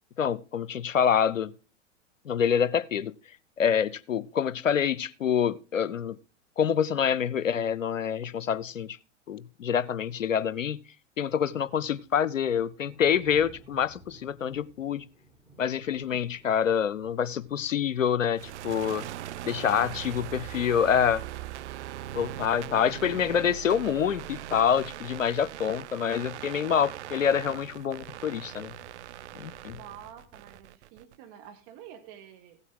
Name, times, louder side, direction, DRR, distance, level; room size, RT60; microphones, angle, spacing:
voice 1, 0.2-1.5 2.2-3.1 3.6-6.2 6.6-9.0 9.3-10.8 11.2-15.1 15.6-19.1 19.4-21.2 22.1-28.7 29.3-29.8, left 8 dB, 85° left, 0.6 m, -26 dB
Thunder, 11.5-30.6, equal, 5° right, 6.1 m, -60 dB
sound 1, 18.4-31.2, right 13 dB, 65° right, 0.5 m, -40 dB
voice 2, 19.3-20.0 29.7-32.6, right 9 dB, 45° right, 1.6 m, -49 dB
15.5 x 8.2 x 3.8 m
figure-of-eight pair, 100°, 38 cm